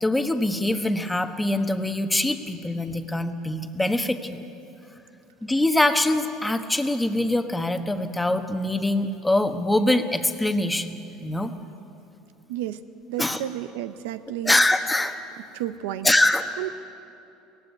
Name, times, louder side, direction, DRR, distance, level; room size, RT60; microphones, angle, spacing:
voice 1, 0.0-4.4 5.4-11.5 13.2-13.4 14.4-15.2 16.0-16.7, left 1 dB, 10° left, 7 dB, 1.2 m, -23 dB
voice 2, 12.5-12.8 13.1-14.5 15.5-16.1 16.6-16.7, right 12 dB, 85° right, 12 dB, 0.6 m, -31 dB
18.0 x 15.5 x 9.5 m, 2.7 s
supercardioid pair, 115°, 0 cm